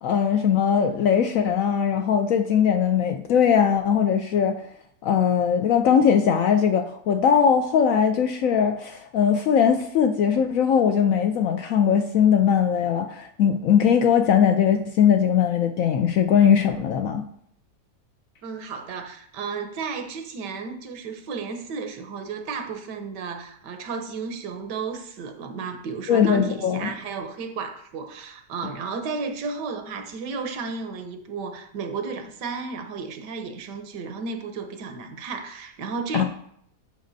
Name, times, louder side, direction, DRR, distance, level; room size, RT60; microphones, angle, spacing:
voice 1, 0.0-4.6 5.0-17.2 26.1-26.9 36.1-36.2, left 7 dB, 70° left, 0.8 m, -20 dB
voice 2, 18.4-36.2, right 4 dB, 80° right, 1.4 m, -33 dB
10.0 x 5.1 x 2.6 m
omnidirectional pair, 1.8 m